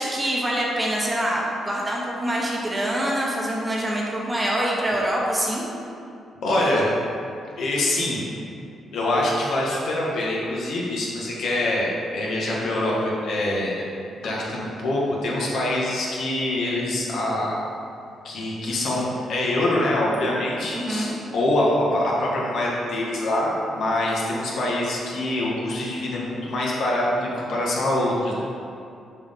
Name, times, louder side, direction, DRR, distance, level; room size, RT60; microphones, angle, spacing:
voice 1, 0.0-5.7 20.7-21.1, right 1 dB, 15° right, -3 dB, 1.0 m, -25 dB
voice 2, 6.4-6.9 7.6-8.2 8.9-13.8 14.2-17.5 18.2-28.3, left 1 dB, 70° left, -4 dB, 1.6 m, -24 dB
6.4 x 5.5 x 3.7 m, 2.6 s
cardioid pair, 125°, 0 cm